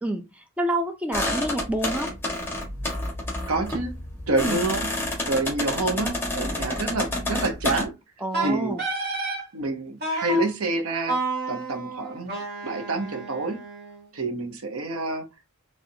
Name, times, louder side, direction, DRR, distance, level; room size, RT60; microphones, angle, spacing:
voice 1, 0.0-2.1 4.4-4.6 8.2-8.8, right 1 dB, 5° right, 0.4 m, -28 dB
sound 1, 1.1-7.8, left 1 dB, 10° left, 1.3 m, -29 dB
voice 2, 3.5-3.9 4.3-4.9 5.3-7.9 8.4-8.8 9.5-11.2 11.5-13.6 14.1-15.3, right 2 dB, 80° right, 0.8 m, -27 dB
Wind instrument woodwind instrument, 8.3-9.4 10.0-10.5 11.1-14.1, right 2 dB, 50° right, 1.6 m, -30 dB
4.1 x 3.2 x 2.7 m
head